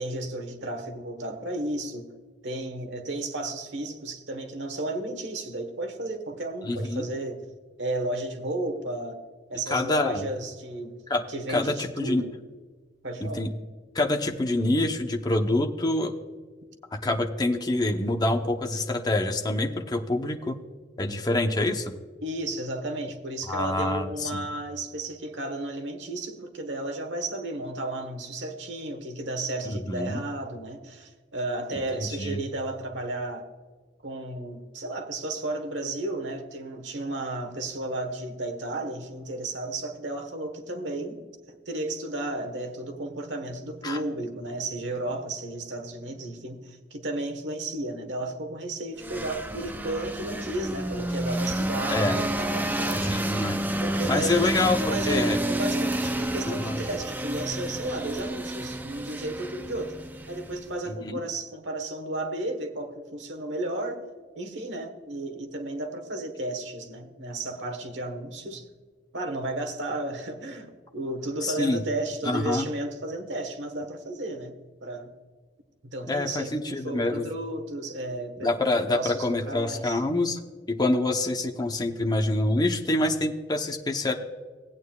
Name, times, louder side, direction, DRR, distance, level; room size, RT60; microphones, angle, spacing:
voice 1, 0.0-2.1 2.4-7.4 7.8-9.2 9.5-11.0 11.3-12.3 13.0-13.4 22.2-33.5 34.0-41.2 41.7-53.0 53.8-54.5 54.9-60.0 60.3-64.0 64.3-68.7 69.1-75.1 75.8-80.0, right 2 dB, 85° right, 1.3 m, -33 dB
voice 2, 6.6-7.0 9.7-10.3 11.1-12.2 13.2-13.5 13.9-16.1 16.9-20.6 21.0-21.9 23.5-24.4 29.6-30.2 32.0-32.4 43.8-44.0 51.9-52.2 52.9-53.6 54.1-55.4 56.5-56.8 60.9-61.2 71.4-71.8 72.2-72.7 76.1-77.3 78.4-80.4 80.7-84.1, left 2 dB, 25° left, 0.8 m, -26 dB
sound 1, 49.0-60.8, right 1 dB, 10° right, 0.5 m, -30 dB
18.0 x 9.0 x 2.4 m
head